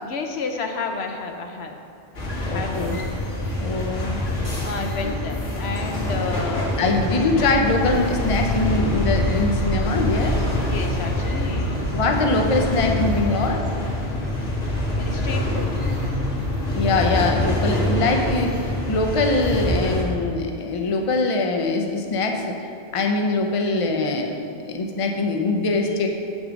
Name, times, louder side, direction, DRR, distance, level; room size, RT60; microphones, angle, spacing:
voice 1, 0.1-1.8 2.4-3.0 4.6-6.8 10.6-11.9 12.9-13.0 14.9-15.7, left 4 dB, 70° left, 4 dB, 0.9 m, -31 dB
sound 1, 2.1-20.0, left 1 dB, 85° left, 2.1 m, -25 dB
voice 2, 2.5-3.0 3.6-4.2 5.0-5.1 6.8-10.4 11.9-13.6 16.7-24.3 24.6-26.1, left 3 dB, 35° left, 2 dB, 0.7 m, -23 dB
7.5 x 6.2 x 5.2 m, 2.6 s
omnidirectional pair, 1.2 m